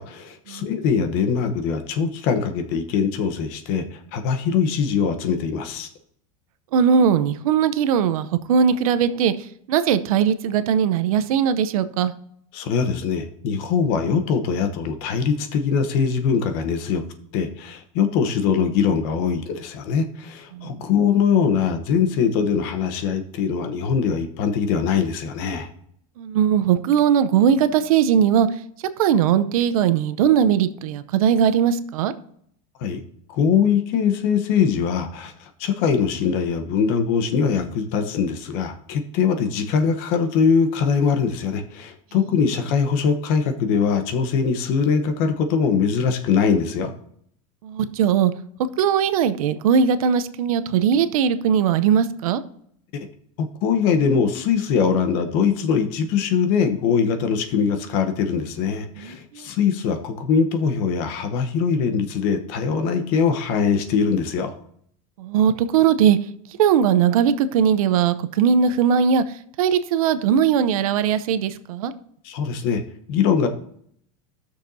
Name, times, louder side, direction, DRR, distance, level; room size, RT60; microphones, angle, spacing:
voice 1, 0.0-5.9 12.5-17.0 17.3-25.7 32.8-33.0 33.3-46.9 53.4-64.5 72.2-72.8 73.1-73.5, left 6 dB, 45° left, 7 dB, 1.0 m, -22 dB
voice 2, 6.7-9.3 9.7-12.1 20.5-20.8 26.2-28.5 29.0-32.1 47.6-48.3 48.8-52.4 59.0-59.5 65.2-66.2 66.6-69.2 69.6-71.9, right 8 dB, 85° right, 12 dB, 0.7 m, -19 dB
16.0 x 6.5 x 2.7 m, 0.67 s
supercardioid pair, 175°, 18 cm